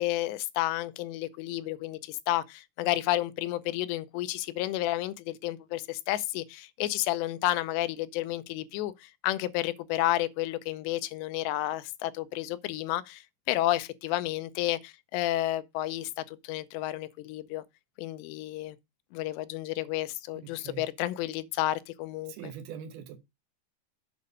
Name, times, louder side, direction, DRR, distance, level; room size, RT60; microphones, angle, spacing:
voice 1, 0.0-17.6 18.0-18.8 19.1-22.5, left 15 dB, 90° left, 2.8 m, -31 dB
voice 2, 20.3-20.9 22.3-23.2, right 8 dB, 75° right, 2.7 m, -42 dB
8.3 x 4.7 x 5.3 m
omnidirectional pair, 4.9 m